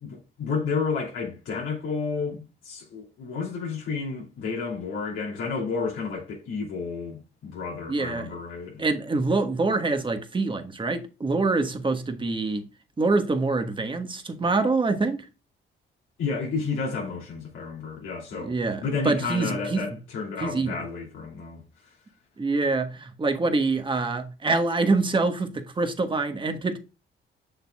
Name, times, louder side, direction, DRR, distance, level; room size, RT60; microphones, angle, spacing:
voice 1, 0.0-8.8 16.2-18.5 18.8-21.6, left 4 dB, 85° left, 2.9 m, -31 dB
voice 2, 7.9-8.3 8.8-12.6 13.0-15.3 18.4-19.8 20.4-20.7 22.4-26.8, right 3 dB, 25° right, 1.4 m, -25 dB
6.8 x 6.6 x 2.3 m
cardioid pair, 90°, 20 cm